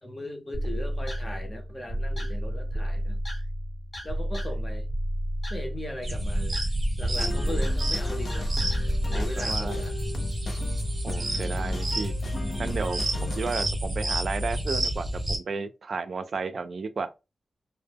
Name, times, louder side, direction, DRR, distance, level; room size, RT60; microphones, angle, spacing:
voice 1, 0.0-3.2 4.0-4.9 5.5-6.6 7.0-8.5 9.1-10.0 13.1-13.3, left 1 dB, 20° left, 0.7 m, -38 dB
sound 1, 0.5-9.3, right 1 dB, 45° left, 0.9 m, -31 dB
sound 2, 6.0-15.4, right 1 dB, 35° right, 0.8 m, -29 dB
sound 3, 7.1-13.7, left 2 dB, 70° left, 0.4 m, -37 dB
voice 2, 9.1-9.8 11.0-12.1 12.6-17.1, right 4 dB, 60° right, 0.3 m, -33 dB
2.0 x 2.0 x 3.4 m
wide cardioid pair, 120°, 0 cm